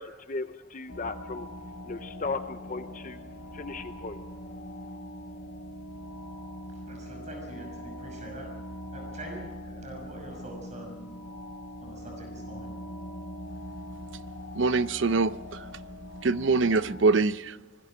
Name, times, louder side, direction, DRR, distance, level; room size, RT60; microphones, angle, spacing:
voice 1, 0.0-4.9, left 3 dB, 40° left, 9 dB, 0.7 m, -37 dB
sound 1, 0.9-17.1, equal, 85° left, 2.7 m, -42 dB
voice 2, 6.8-8.5 8.9-11.0 11.8-12.7, right 1 dB, 40° right, 1 dB, 5.9 m, -44 dB
voice 3, 14.6-15.6 16.2-17.6, right 3 dB, 75° right, 15 dB, 0.6 m, -24 dB
26.0 x 21.0 x 5.0 m, 1.2 s
head